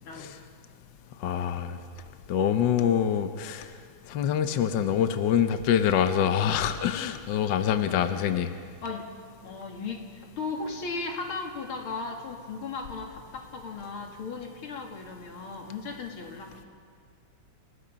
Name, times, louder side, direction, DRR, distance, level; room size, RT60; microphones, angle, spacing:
voice 1, 0.0-0.4 7.8-8.2 8.8-9.1 9.4-16.6, left 4 dB, 90° left, 2 dB, 3.0 m, -36 dB
voice 2, 1.2-1.8 2.3-3.7 4.1-8.5, left 9 dB, 65° left, 8 dB, 1.4 m, -25 dB
28.5 x 18.0 x 5.2 m, 2.2 s
omnidirectional pair, 2.3 m